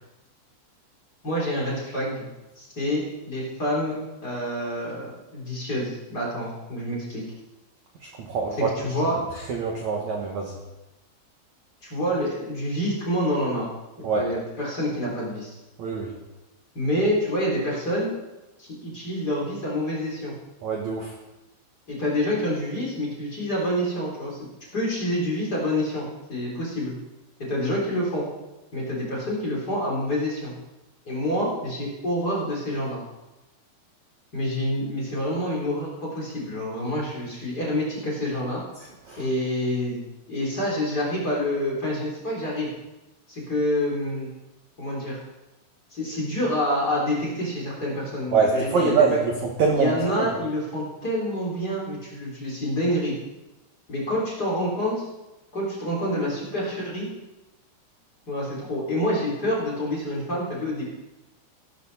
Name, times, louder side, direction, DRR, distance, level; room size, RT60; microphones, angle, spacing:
voice 1, 1.2-2.3 2.6-4.0 4.2-7.2 8.6-9.2 11.8-13.7 14.0-15.5 16.7-18.1 18.6-20.3 21.9-24.4 24.7-26.9 27.5-28.3 28.7-30.5 31.1-33.0 34.3-38.6 39.2-40.0 40.3-42.7 43.3-44.3 44.8-45.2 45.9-49.2 49.7-53.2 53.9-55.0 55.5-57.1 58.3-60.8, equal, 20° left, -5 dB, 3.4 m, -27 dB
voice 2, 8.2-8.7 9.5-10.6 14.0-14.3 15.8-16.1 20.6-21.1 39.1-39.3 48.3-50.3, right 5 dB, 75° right, 0 dB, 1.7 m, -24 dB
17.5 x 12.0 x 4.2 m, 1.0 s
omnidirectional pair, 5.6 m